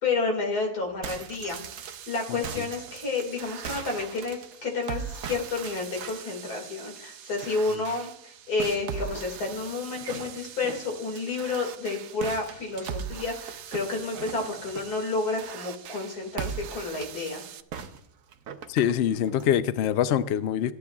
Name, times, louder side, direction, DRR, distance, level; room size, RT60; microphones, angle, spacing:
voice 1, 0.0-17.4, left 3 dB, 65° left, 2.7 m, -30 dB
window break glass shatter ext perspective trailer, 0.8-4.9 5.2-6.4 8.6-11.6 12.2-15.0 16.3-17.3 17.7-19.5, right 7 dB, 60° right, 1.1 m, -41 dB
sound 1, 1.5-17.6, right 8 dB, 85° right, 0.6 m, -41 dB
voice 2, 2.3-2.6 18.7-20.7, left 10 dB, 85° left, 0.5 m, -25 dB
14.5 x 10.5 x 2.3 m
omnidirectional pair, 1.8 m